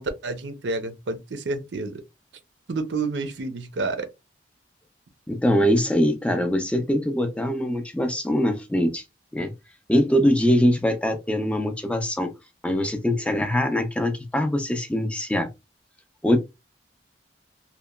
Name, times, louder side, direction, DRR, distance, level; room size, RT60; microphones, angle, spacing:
voice 1, 0.0-2.0 2.7-4.1, right 3 dB, 75° right, 0.5 m, -29 dB
voice 2, 5.3-9.0 9.3-9.5 9.9-12.3 12.6-15.5 16.2-16.4, equal, 5° left, 0.4 m, -22 dB
2.8 x 2.2 x 2.2 m
head